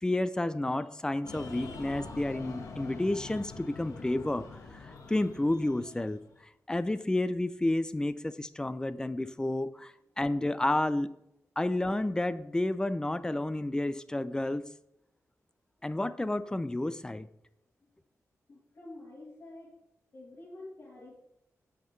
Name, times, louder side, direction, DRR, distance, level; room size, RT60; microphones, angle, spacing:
voice 1, 0.0-6.2 6.7-11.2 11.6-14.7 15.8-17.3, left 1 dB, 15° left, 0.5 m, -31 dB
Breathing, 1.2-6.4, left 4 dB, 80° left, 1.4 m, -45 dB
voice 2, 18.5-19.7 20.1-21.2, left 2 dB, 50° left, 3.2 m, -48 dB
16.0 x 5.8 x 3.2 m
wide cardioid pair, 110°, 6 cm